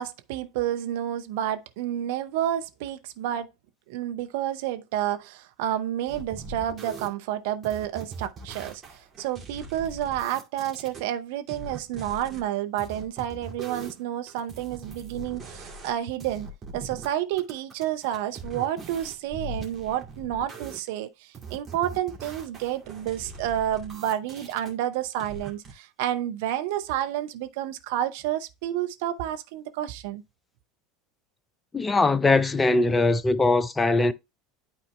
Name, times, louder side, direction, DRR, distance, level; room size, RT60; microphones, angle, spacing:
voice 1, 0.0-3.5 3.9-30.2, right 11 dB, 55° right, 0.7 m, -30 dB
sound 1, 6.1-7.1 7.6-11.0 11.5-12.4 12.8-17.1 17.4-20.8 21.3-24.7 25.2-25.7, right 3 dB, 25° right, 2.2 m, -41 dB
voice 2, 31.7-34.1, left 3 dB, 15° left, 0.5 m, -21 dB
12.0 x 4.2 x 2.2 m
figure-of-eight pair, 75°, 0 cm